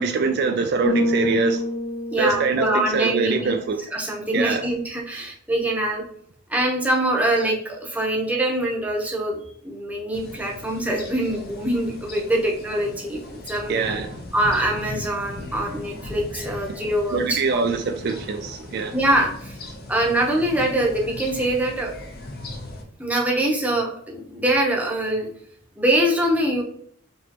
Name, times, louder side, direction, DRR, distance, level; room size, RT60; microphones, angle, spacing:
voice 1, 0.0-1.6 2.2-3.8 4.3-4.6 13.7-14.2 17.1-19.0, right 4 dB, 50° right, 0.3 m, -24 dB
Bass guitar, 0.8-3.2, left 1 dB, 70° left, 1.1 m, -26 dB
voice 2, 2.1-3.6 3.9-6.0 6.5-13.8 14.3-17.6 18.9-19.6 19.9-21.9 23.0-25.3 25.8-26.6, right 1 dB, 5° right, 0.8 m, -24 dB
sound 1, 10.1-22.8, left 2 dB, 45° left, 0.7 m, -38 dB
5.1 x 3.1 x 2.9 m
head